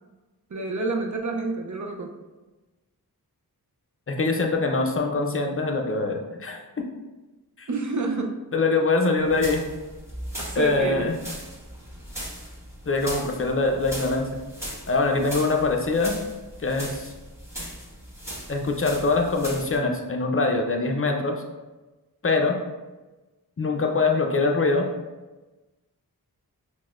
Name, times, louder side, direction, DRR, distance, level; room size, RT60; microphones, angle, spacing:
voice 1, 0.5-2.1 7.7-8.4 10.5-11.1, right 3 dB, 50° right, 2 dB, 0.5 m, -28 dB
voice 2, 4.1-6.6 7.6-7.7 8.5-9.6 10.5-11.1 12.9-14.3 14.9-16.1 16.6-17.1 18.5-21.4 22.2-22.6 23.6-24.9, left 3 dB, 35° left, 3 dB, 0.5 m, -23 dB
sound 1, 9.2-19.8, equal, 5° right, 1.3 m, -38 dB
6.0 x 2.2 x 2.4 m, 1.2 s
wide cardioid pair, 55°, 39 cm